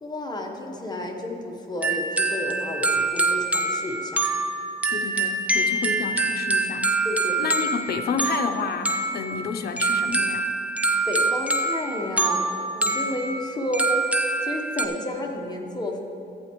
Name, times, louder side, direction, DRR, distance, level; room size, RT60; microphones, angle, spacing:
voice 1, 0.0-4.2 7.0-7.4 11.1-16.0, left 1 dB, 20° left, 1 dB, 1.0 m, -31 dB
sound 1, 1.8-14.9, right 2 dB, 5° right, 0.7 m, -25 dB
voice 2, 4.9-6.9 7.4-10.5, left 5 dB, 55° left, 6 dB, 0.6 m, -30 dB
14.5 x 8.5 x 3.1 m, 2.8 s
cardioid pair, 110°, 19 cm